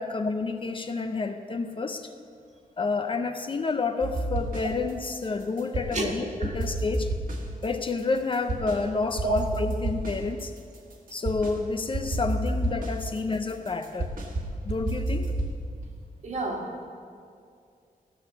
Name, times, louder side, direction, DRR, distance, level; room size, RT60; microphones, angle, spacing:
voice 1, 0.0-2.1 2.8-7.1 7.6-10.5 11.1-14.1 14.6-15.3, left 3 dB, 35° left, 7 dB, 0.5 m, -29 dB
sound 1, 4.0-4.9 5.2-6.1 6.4-8.8 9.2-11.6 11.9-15.6, right 1 dB, 65° right, 1.7 m, -31 dB
voice 2, 16.2-16.9, right 2 dB, 50° right, 1 dB, 1.6 m, -30 dB
16.0 x 6.9 x 6.8 m, 2.3 s
wide cardioid pair, 165°, 15 cm